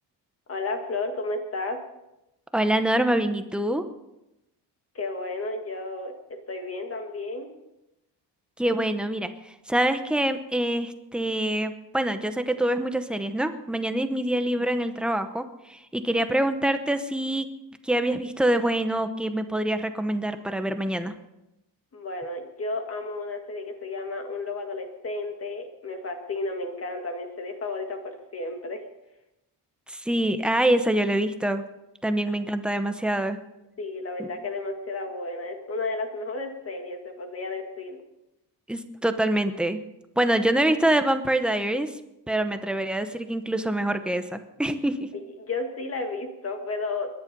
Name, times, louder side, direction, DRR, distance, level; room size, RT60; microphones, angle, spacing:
voice 1, 0.5-1.8 5.0-7.5 21.9-28.8 33.8-38.0 45.1-47.1, left 3 dB, 30° left, 4 dB, 1.8 m, -32 dB
voice 2, 2.5-3.9 8.6-17.5 17.8-21.1 29.9-31.6 32.0-33.4 34.2-34.3 38.7-39.8 40.2-41.9 42.3-45.1, right 1 dB, ahead, 8 dB, 0.8 m, -25 dB
21.5 x 10.5 x 5.3 m, 0.91 s
cardioid pair, 165°, 43 cm